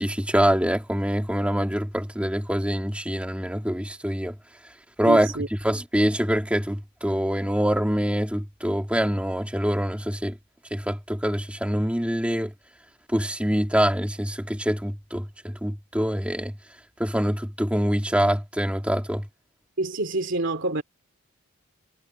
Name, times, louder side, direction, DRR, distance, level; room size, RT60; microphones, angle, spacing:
voice 1, 0.0-4.3 5.0-5.3 5.6-10.4 10.7-12.5 13.1-16.5 17.0-19.2, equal, 5° right, 2.8 m, -25 dB
voice 2, 5.1-5.5 19.8-20.8, right 2 dB, 55° right, 2.8 m, -27 dB
head